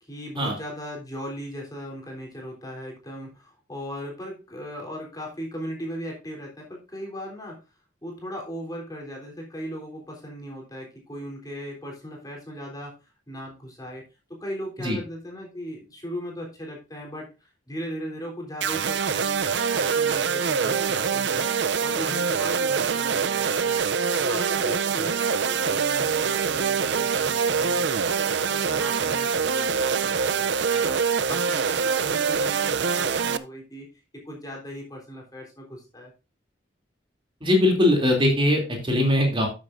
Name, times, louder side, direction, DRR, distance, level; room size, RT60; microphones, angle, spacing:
voice 1, 0.0-7.6 8.0-12.9 13.3-14.0 14.3-21.5 21.8-23.9 24.2-27.9 28.2-31.0 31.3-33.9 34.3-36.1, equal, 20° left, 0 dB, 3.5 m, -38 dB
sound 1, 18.6-33.4, right 6 dB, 70° right, 0.6 m, -24 dB
voice 2, 37.4-39.5, left 1 dB, 30° right, 1 dB, 2.9 m, -21 dB
12.5 x 7.8 x 2.6 m, 0.29 s
head